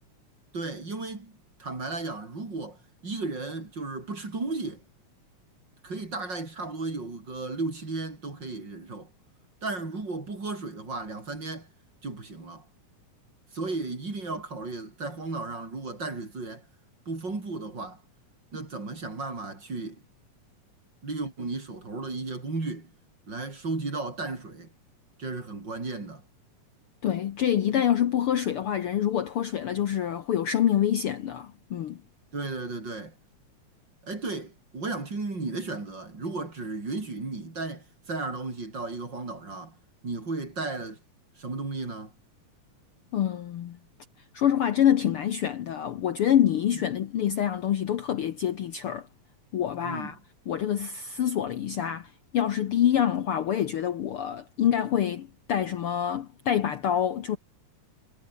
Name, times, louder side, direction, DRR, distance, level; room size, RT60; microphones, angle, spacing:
voice 1, 0.5-1.3 1.6-4.8 5.8-9.1 9.6-11.7 12.0-12.7 13.5-16.6 17.1-18.0 18.5-20.0 21.0-22.9 23.3-24.7 25.2-26.2 32.3-33.2 34.0-39.8 40.0-41.0 41.4-42.1 46.7-46.8 49.8-50.1, right 3 dB, 35° right, 5.2 m, -34 dB
voice 2, 27.0-32.0 43.1-43.8 44.3-49.1 49.5-50.2 50.5-57.4, left 10 dB, 60° left, 1.7 m, -26 dB
omnidirectional pair, 3.3 m